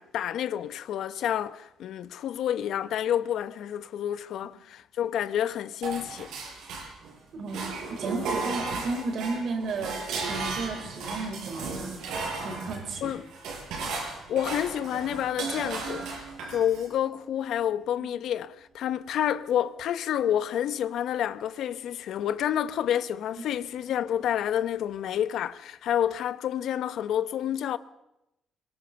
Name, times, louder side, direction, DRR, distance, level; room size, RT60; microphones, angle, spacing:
voice 1, 0.0-6.3 13.0-13.2 14.3-16.1 16.5-27.8, left 10 dB, 75° left, 0.9 m, -29 dB
sound 1, 5.8-7.2 7.5-16.9, right 4 dB, 90° right, 6.1 m, -35 dB
voice 2, 7.3-7.6 8.0-10.0 10.2-12.0 12.4-13.1, right 3 dB, 65° right, 4.8 m, -33 dB
23.0 x 21.0 x 6.9 m
cardioid pair, 90°, 0 cm